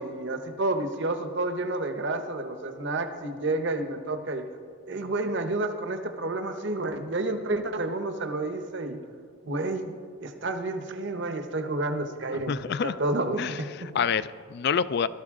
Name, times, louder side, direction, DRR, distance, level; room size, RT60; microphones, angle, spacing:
voice 1, 0.0-4.5 4.9-9.0 9.4-12.6 12.8-13.9, right 2 dB, 55° right, 7 dB, 0.9 m, -30 dB
voice 2, 12.5-13.0 13.4-15.1, left 6 dB, 50° left, 15 dB, 0.3 m, -27 dB
17.0 x 12.5 x 3.7 m, 2.2 s
head